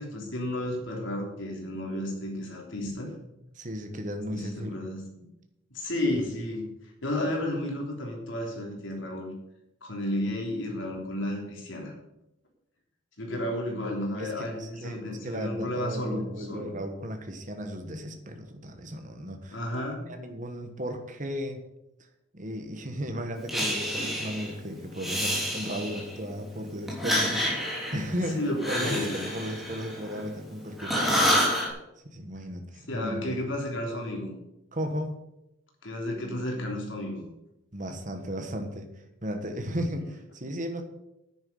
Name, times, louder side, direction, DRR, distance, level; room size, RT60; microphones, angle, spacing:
voice 1, 0.0-3.1 4.3-5.3 5.7-6.7 7.0-9.3 9.8-11.9 13.2-16.7 19.5-20.1 27.3-27.4 28.3-29.2 32.9-34.3 35.8-37.2, left 1 dB, 70° left, 0 dB, 3.4 m, -32 dB
voice 2, 3.5-4.9 14.2-19.6 20.1-21.6 22.3-27.3 27.9-31.3 32.1-33.5 34.7-35.2 37.7-38.9 39.2-40.8, equal, 40° right, 5 dB, 1.4 m, -35 dB
Breathing, 23.5-24.5 24.9-26.2 26.9-30.5 30.8-31.7, equal, ahead, 3.2 m, -28 dB
10.0 x 9.6 x 5.5 m, 0.88 s
head